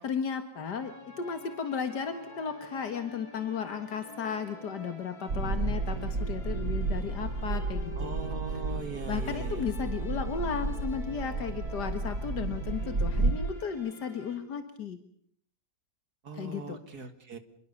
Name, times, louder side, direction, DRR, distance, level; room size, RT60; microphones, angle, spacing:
voice 1, 0.0-8.1 8.5-8.6 9.1-15.0 16.3-17.1, left 6 dB, 85° left, 8 dB, 2.2 m, -35 dB
sound 1, 0.5-14.4, left 2 dB, 60° left, 6.0 m, -48 dB
sound 2, 5.3-13.3, right 3 dB, 50° right, 1.9 m, -32 dB
voice 2, 8.0-9.7 16.2-17.4, right 4 dB, 65° right, 9 dB, 2.7 m, -40 dB
27.5 x 22.0 x 7.0 m, 0.63 s
omnidirectional pair, 1.8 m